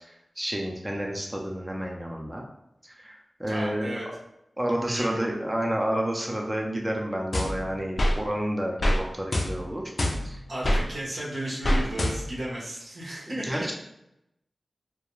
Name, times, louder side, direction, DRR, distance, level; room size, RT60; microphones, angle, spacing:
voice 1, 0.0-2.4 2.8-3.9 4.6-9.8 10.2-10.4 13.4-13.7, right 1 dB, 15° right, 0 dB, 0.4 m, -30 dB
voice 2, 3.5-4.0 4.8-5.4 10.5-13.7, right 1 dB, 80° right, -5 dB, 0.8 m, -34 dB
sound 1, 7.3-8.2 8.8-9.0 9.3-10.8 11.6-12.5, equal, 50° left, 0.3 m, -25 dB
2.3 x 2.1 x 3.0 m, 0.82 s
cardioid pair, 55°, 0 cm